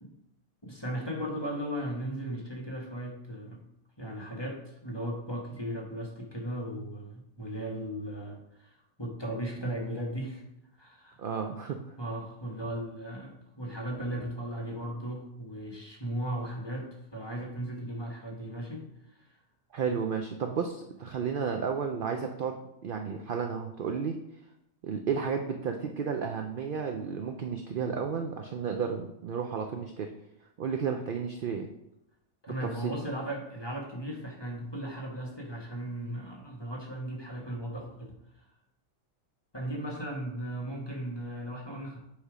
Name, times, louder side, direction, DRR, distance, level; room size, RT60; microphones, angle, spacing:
voice 1, 0.6-3.6 4.0-10.4 10.8-11.2 12.0-18.8 19.2-19.3 32.4-38.1 39.5-42.0, right 1 dB, 20° left, -1 dB, 1.1 m, -37 dB
voice 2, 11.2-11.8 19.7-24.2 24.8-30.1 30.6-31.7 32.5-32.9, right 6 dB, 60° right, 4 dB, 0.6 m, -32 dB
8.1 x 3.4 x 4.9 m, 0.84 s
omnidirectional pair, 1.4 m